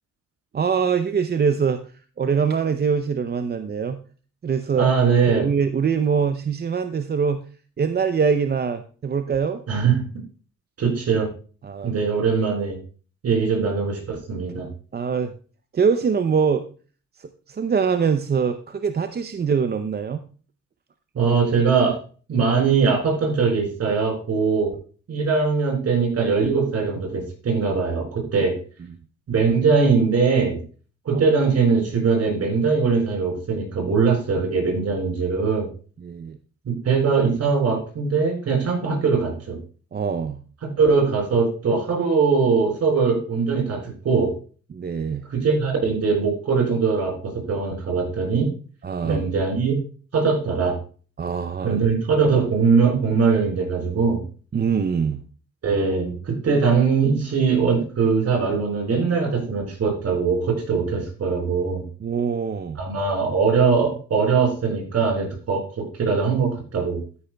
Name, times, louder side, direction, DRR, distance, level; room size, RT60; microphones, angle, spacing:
voice 1, 0.5-1.8 2.2-4.0 4.4-4.9 5.3-7.4 7.8-9.6 11.6-11.9 14.9-15.3 15.7-16.7 17.2-20.2 36.0-36.4 39.9-40.4 44.7-45.2 48.8-49.2 51.2-51.8 54.5-55.2 62.0-62.8, right 6 dB, 35° right, 9 dB, 0.6 m, -23 dB
voice 2, 4.7-5.5 9.7-10.0 10.8-11.3 11.8-12.8 13.2-14.7 21.1-22.0 22.3-24.7 25.1-28.5 29.3-30.6 31.0-35.7 36.6-39.6 40.6-44.3 45.3-48.5 49.0-49.7 50.1-50.8 51.6-54.2 55.6-61.8 62.7-67.0, right 5 dB, 55° right, 1 dB, 5.0 m, -21 dB
12.5 x 9.9 x 2.3 m, 0.39 s
cardioid pair, 90°, 30 cm